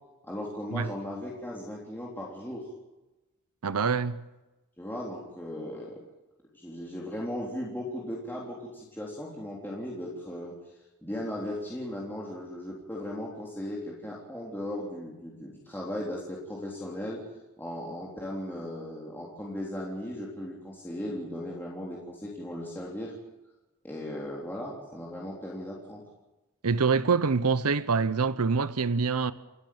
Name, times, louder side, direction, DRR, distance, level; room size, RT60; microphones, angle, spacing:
voice 1, 0.2-2.7 4.8-6.0 6.5-10.5 11.0-17.2 17.6-23.1 23.8-26.0, left 1 dB, 10° left, 3.6 m, -37 dB
voice 2, 3.6-4.3 26.6-29.3, right 5 dB, 80° right, 0.8 m, -25 dB
29.0 x 13.0 x 8.7 m
head